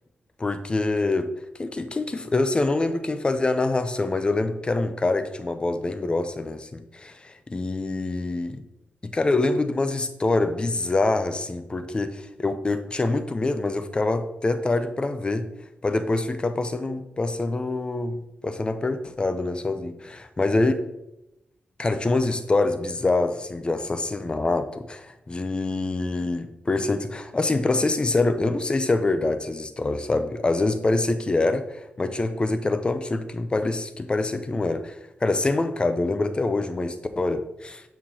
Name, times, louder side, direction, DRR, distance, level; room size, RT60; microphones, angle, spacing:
voice 1, 0.4-1.3 1.6-8.6 9.0-15.5 15.8-20.7 21.8-37.8, left 2 dB, 25° left, 9 dB, 0.5 m, -25 dB
6.7 x 5.8 x 2.8 m, 0.91 s
wide cardioid pair, 105°, 4 cm